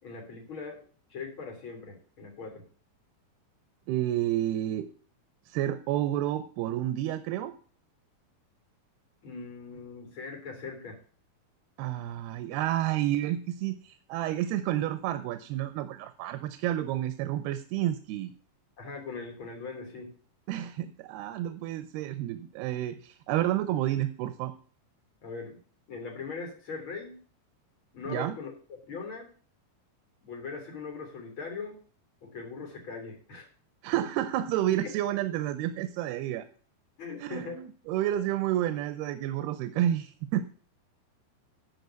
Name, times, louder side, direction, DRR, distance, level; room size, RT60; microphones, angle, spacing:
voice 1, 0.0-0.8 1.1-2.6 9.2-11.0 18.8-20.1 25.2-25.6 25.9-27.2 27.9-29.3 30.2-31.8 32.2-33.5 34.8-34.9 37.0-37.6, left 4 dB, 35° left, 2 dB, 3.7 m, -40 dB
voice 2, 3.9-4.9 5.5-7.5 11.8-18.3 20.5-24.5 28.1-28.4 33.8-36.5 37.2-40.4, right 13 dB, 90° right, 11 dB, 2.7 m, -30 dB
12.0 x 5.1 x 8.2 m, 0.42 s
omnidirectional pair, 4.4 m